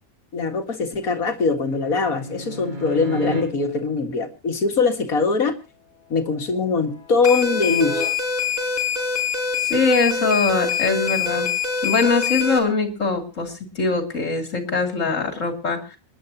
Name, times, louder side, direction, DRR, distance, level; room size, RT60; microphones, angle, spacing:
voice 1, 0.3-5.6 6.1-8.1, left 4 dB, 90° left, 5 dB, 2.3 m, -22 dB
sound 1, 1.7-3.4 6.1-8.1 11.5-11.8, equal, 35° right, 6.4 m, -34 dB
sound 2, 7.2-12.6, left 6 dB, 30° left, 5.2 m, -24 dB
voice 2, 9.7-11.5 11.8-16.0, left 4 dB, 65° left, 5 dB, 3.1 m, -22 dB
28.0 x 10.5 x 2.9 m, 0.30 s
omnidirectional pair, 1.4 m